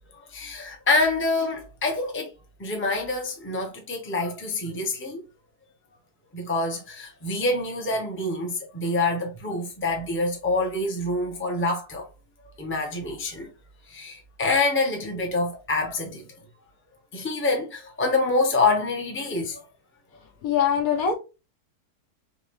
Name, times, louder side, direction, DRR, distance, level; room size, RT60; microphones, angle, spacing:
voice 1, 0.2-2.3 2.6-5.2 6.3-12.1 12.6-13.5 13.9-16.3 17.1-19.6, left 2 dB, 10° left, 0.7 m, -26 dB
voice 2, 20.4-21.1, left 8 dB, 70° left, 1.3 m, -22 dB
3.8 x 3.2 x 3.0 m
omnidirectional pair, 1.7 m